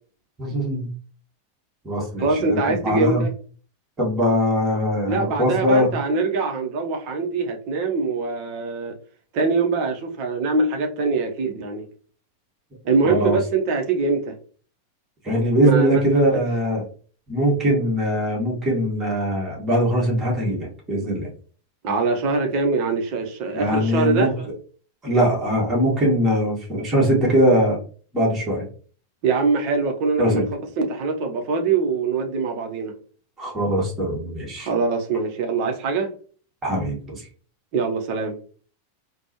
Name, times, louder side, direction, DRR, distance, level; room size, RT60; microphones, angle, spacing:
voice 1, 0.4-0.9 1.8-3.2 4.0-5.9 13.0-13.4 15.2-16.8 17.3-21.3 23.5-24.3 25.0-27.8 28.1-28.6 30.2-30.4 33.4-34.7 36.6-37.3, equal, 15° right, 1.6 m, -21 dB
voice 2, 2.2-3.3 5.1-8.9 9.3-11.9 12.8-14.3 15.6-15.9 21.8-24.3 29.2-30.4 30.8-32.9 34.6-36.1 37.7-38.4, right 4 dB, 45° right, 0.8 m, -23 dB
4.2 x 2.3 x 2.9 m
figure-of-eight pair, 90°, 0 cm